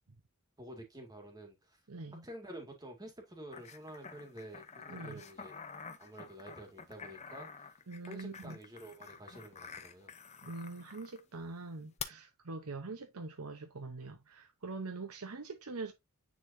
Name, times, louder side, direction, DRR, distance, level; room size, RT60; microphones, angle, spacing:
voice 1, 0.6-1.8 2.2-5.6 6.0-7.7 8.1-10.1, right 1 dB, 15° right, 2.1 m, -49 dB
voice 2, 1.9-2.2 4.9-5.2 7.9-8.6 10.4-15.9, right 3 dB, 85° right, 0.9 m, -43 dB
sound 1, 3.5-11.2 12.0-12.1, left 6 dB, 30° left, 0.8 m, -48 dB
9.6 x 4.0 x 2.7 m
head